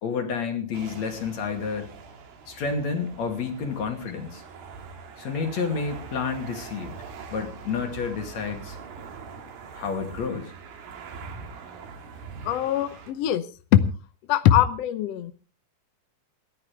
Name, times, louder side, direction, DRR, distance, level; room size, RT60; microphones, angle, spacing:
voice 1, 0.0-1.9 2.5-4.4 5.2-6.9 7.3-8.8 9.8-10.5, left 5 dB, 50° left, 4 dB, 3.5 m, -30 dB
sound 1, 0.7-13.1, right 5 dB, 90° right, 3.8 m, -43 dB
voice 2, 12.4-13.4 13.7-13.8 14.3-15.3, left 11 dB, 80° left, 11 dB, 1.4 m, -21 dB
27.5 x 10.5 x 3.4 m, 0.35 s
omnidirectional pair, 4.1 m